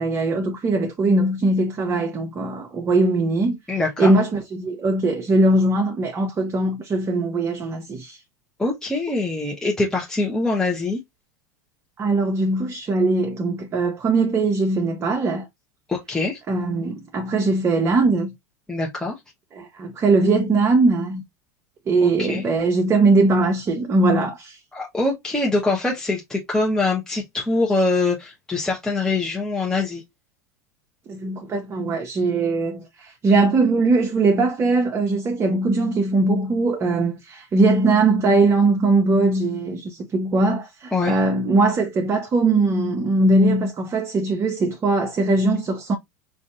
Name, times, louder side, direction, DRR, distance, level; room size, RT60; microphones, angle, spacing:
voice 1, 0.0-3.6 4.0-8.2 12.0-15.5 16.5-18.3 19.5-21.2 21.9-24.6 31.1-45.9, right 2 dB, 30° right, 0.7 m, -20 dB
voice 2, 3.7-4.1 8.6-11.0 15.9-16.4 18.7-19.1 22.0-22.4 24.7-30.0 40.9-41.2, left 3 dB, 5° left, 0.9 m, -23 dB
5.0 x 2.6 x 2.5 m
hypercardioid pair, 95°, 9 cm